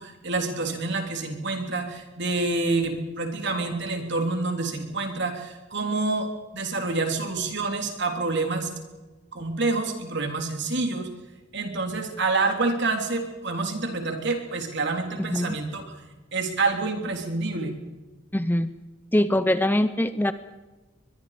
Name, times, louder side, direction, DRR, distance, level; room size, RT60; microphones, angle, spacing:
voice 1, 0.0-8.7 9.3-11.1 11.5-16.0 16.3-17.7, right 3 dB, 55° right, 4 dB, 3.6 m, -27 dB
voice 2, 15.2-15.5 18.3-18.7 19.1-20.3, left 1 dB, 10° left, 12 dB, 0.6 m, -23 dB
23.5 x 22.0 x 5.1 m, 1.2 s
head